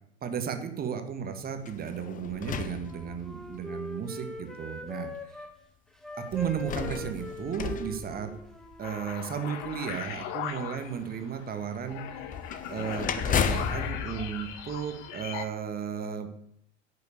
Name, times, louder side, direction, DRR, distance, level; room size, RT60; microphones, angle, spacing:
voice 1, 0.2-5.5 6.2-8.3 8.8-12.0 12.7-16.3, right 8 dB, 25° right, 7 dB, 1.7 m, -34 dB
sound 1, 1.6-3.6 4.4-4.5 6.3-8.9 12.3-15.4, left 8 dB, 20° left, 1.0 m, -34 dB
Wind instrument woodwind instrument, 2.4-5.5 5.9-9.4, equal, ahead, 1.5 m, -42 dB
sound 2, 8.8-15.4, left 9 dB, 45° left, 1.5 m, -39 dB
10.5 x 6.7 x 8.5 m, 0.73 s
figure-of-eight pair, 85°, 35 cm